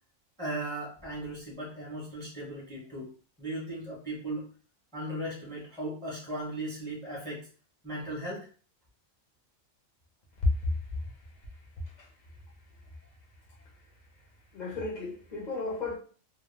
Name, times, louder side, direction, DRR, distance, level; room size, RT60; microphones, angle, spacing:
voice 1, 0.4-3.1 3.4-4.5 4.9-7.4 7.8-8.5, right 1 dB, 5° left, 0.7 m, -37 dB
voice 2, 14.5-16.0, left 3 dB, 50° left, 0.6 m, -31 dB
2.2 x 2.1 x 3.2 m
omnidirectional pair, 1.4 m